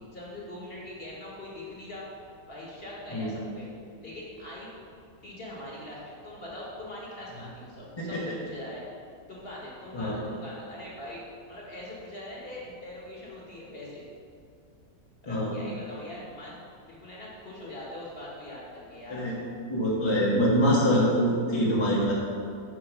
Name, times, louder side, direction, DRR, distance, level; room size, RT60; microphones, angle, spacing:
voice 1, 0.1-2.0 2.5-3.7 4.0-4.7 5.2-8.8 9.3-14.1 15.2-16.6 16.9-19.2, left 1 dB, 35° left, -5 dB, 1.6 m, -42 dB
voice 2, 19.7-22.1, equal, 20° left, -6 dB, 1.0 m, -24 dB
7.2 x 4.6 x 6.0 m, 2.2 s
omnidirectional pair, 1.9 m